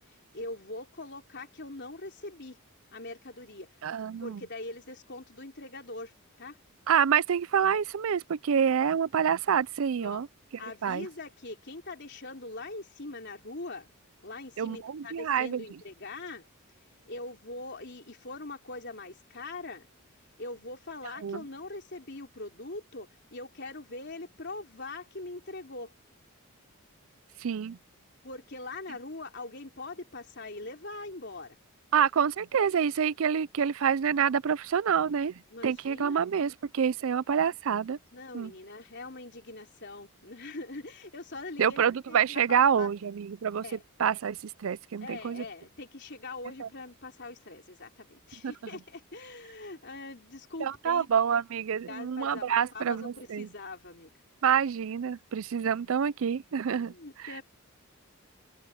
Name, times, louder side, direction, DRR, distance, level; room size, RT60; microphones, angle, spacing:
voice 1, 0.1-2.6 2.9-3.7 4.2-6.1 6.4-6.6 8.5-8.7 10.0-10.2 10.6-13.9 14.2-16.4 17.1-19.9 20.4-25.9 28.2-31.6 35.5-36.2 38.1-42.9 43.6-43.8 45.0-51.2 51.9-54.1 56.7-57.4, left 2 dB, 50° left, 3.8 m, -42 dB
voice 2, 3.8-4.4 6.9-10.3 10.8-11.1 14.6-15.6 21.2-21.4 27.4-27.8 31.9-38.0 38.3-38.5 41.6-43.6 44.0-45.4 46.6-46.7 48.4-48.5 50.6-53.5 54.4-56.9 57.2-57.3, right 7 dB, 65° right, 0.4 m, -27 dB
head